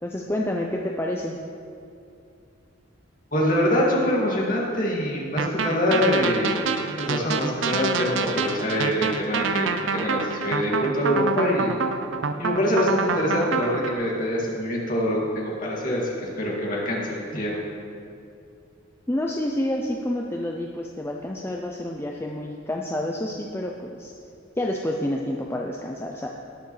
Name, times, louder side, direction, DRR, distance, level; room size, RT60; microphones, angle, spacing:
voice 1, 0.0-1.4 19.1-24.1 24.6-26.3, left 1 dB, 10° left, 0 dB, 0.5 m, -28 dB
voice 2, 3.3-11.7 12.4-16.0 16.4-17.6, equal, 40° left, -4 dB, 2.2 m, -24 dB
sound 1, 5.4-13.9, right 5 dB, 75° right, 0.6 m, -27 dB
18.0 x 6.9 x 3.2 m, 2.6 s
head